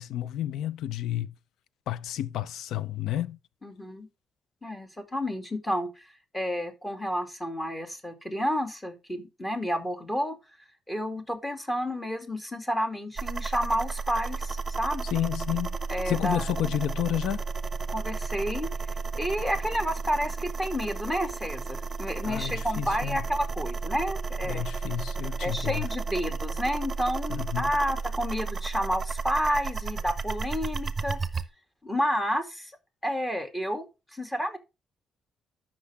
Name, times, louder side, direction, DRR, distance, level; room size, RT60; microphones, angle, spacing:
voice 1, 0.0-1.3 1.9-3.4 15.1-15.8 16.1-17.4 22.2-23.2 24.4-25.9 27.3-27.7, left 12 dB, 85° left, 0.5 m, -31 dB
voice 2, 3.6-4.1 4.6-6.1 6.3-10.4 10.9-15.0 15.9-16.4 17.9-18.7 19.1-24.7 25.4-31.2 31.8-32.7 33.0-34.6, equal, 15° left, 2.4 m, -30 dB
sound 1, 13.2-31.4, right 4 dB, 25° right, 0.8 m, -33 dB
13.0 x 6.1 x 3.4 m
cardioid pair, 90°, 0 cm